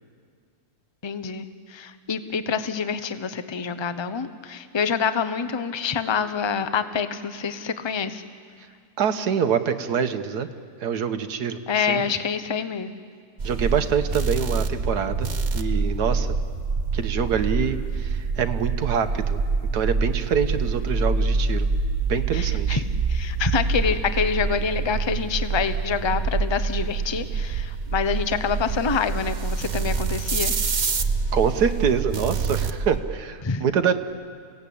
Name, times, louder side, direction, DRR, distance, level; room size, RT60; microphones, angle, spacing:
voice 1, 1.0-8.2 11.7-12.9 22.3-22.8 23.1-30.5 33.4-33.6, left 6 dB, 25° left, 11 dB, 0.7 m, -26 dB
voice 2, 9.0-10.5 10.8-12.0 13.4-15.3 15.5-16.4 16.9-19.4 19.7-21.7 22.1-22.8 31.3-33.9, right 7 dB, 85° right, 9 dB, 1.7 m, -25 dB
sound 1, 13.4-33.0, right 4 dB, 35° right, 0.9 m, -26 dB
29.5 x 17.5 x 8.6 m, 2.1 s
omnidirectional pair, 1.7 m